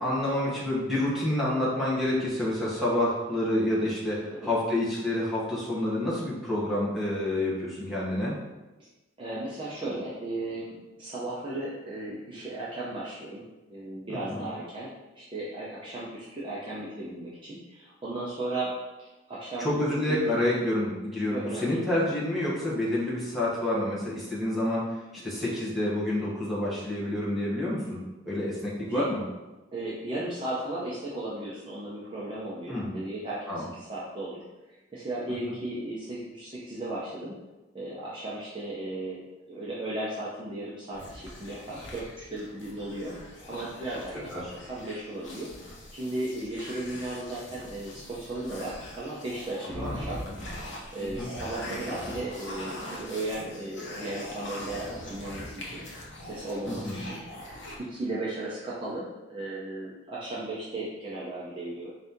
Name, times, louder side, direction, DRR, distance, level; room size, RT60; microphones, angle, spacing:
voice 1, 0.0-8.4 14.1-14.5 19.6-24.9 25.2-28.0 28.3-29.2 32.7-32.9 33.5-33.7 44.3-44.5 49.8-50.0 50.2-50.3 51.0-51.3 56.7-57.0, left 1 dB, ahead, -8 dB, 1.0 m, -28 dB
voice 2, 9.2-13.4 13.7-14.9 15.2-18.7 19.0-20.4 21.3-22.1 28.8-29.0 29.7-34.4 34.9-37.4 37.7-50.2 50.9-55.8 56.2-61.9, right 2 dB, 25° right, -7 dB, 0.6 m, -36 dB
sound 1, 40.9-57.8, left 1 dB, 65° left, 0.8 m, -41 dB
4.0 x 2.7 x 3.5 m, 1.1 s
head